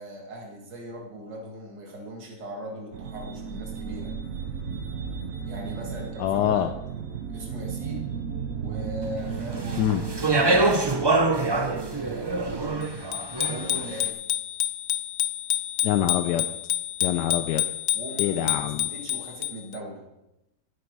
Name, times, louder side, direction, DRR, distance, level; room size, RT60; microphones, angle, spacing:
voice 1, 0.0-4.1 5.5-6.7 7.3-8.1 8.6-10.2 11.5-12.9 13.4-14.2 17.9-20.0, right 1 dB, 80° right, 0 dB, 2.7 m, -39 dB
sound 1, 2.9-12.8, right 6 dB, 55° right, 1.2 m, -35 dB
voice 2, 6.2-6.7 9.8-10.0 15.8-16.4 17.0-17.6 18.2-18.9, left 11 dB, 80° left, 9 dB, 1.2 m, -25 dB
Speech, 9.5-13.9, right 2 dB, 40° right, 0.3 m, -25 dB
Bicycle bell, 13.1-19.8, left 11 dB, 60° left, 0.8 m, -28 dB
16.0 x 9.5 x 4.7 m, 0.90 s
omnidirectional pair, 1.9 m